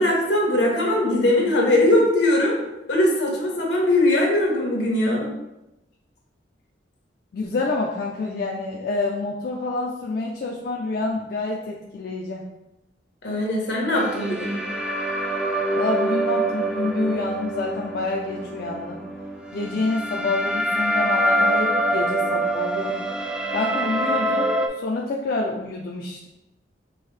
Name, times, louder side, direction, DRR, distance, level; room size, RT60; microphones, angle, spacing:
voice 1, 0.0-2.6 2.9-5.3 13.2-14.6, left 1 dB, 85° left, -1 dB, 1.2 m, -20 dB
voice 2, 7.3-12.5 15.8-19.0 19.5-23.1 23.5-26.3, left 3 dB, 55° left, -1 dB, 0.4 m, -27 dB
sound 1, 13.9-24.7, right 1 dB, 5° right, 0.4 m, -25 dB
5.4 x 2.6 x 3.2 m, 0.95 s
head